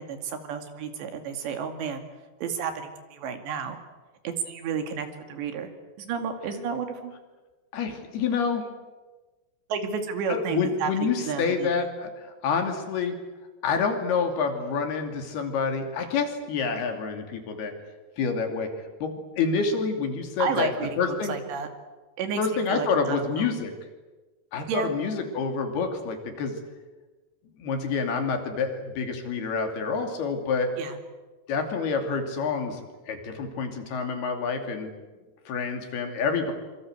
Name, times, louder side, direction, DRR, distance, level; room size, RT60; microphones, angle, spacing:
voice 1, 0.0-2.0 2.4-3.8 4.2-5.7 6.0-7.1 9.7-11.7 20.4-21.0 21.3-21.7 22.2-22.4 22.7-23.5 24.7-24.9 30.8-31.0, right 6 dB, 85° right, 7 dB, 4.5 m, -31 dB
voice 2, 7.7-8.7 10.3-13.2 13.6-17.7 18.2-18.7 19.0-21.4 22.4-23.7 24.5-26.6 27.6-30.7 31.5-34.9 35.5-36.5, left 5 dB, 65° left, 5 dB, 4.6 m, -28 dB
25.5 x 24.5 x 8.1 m, 1.2 s
omnidirectional pair, 4.9 m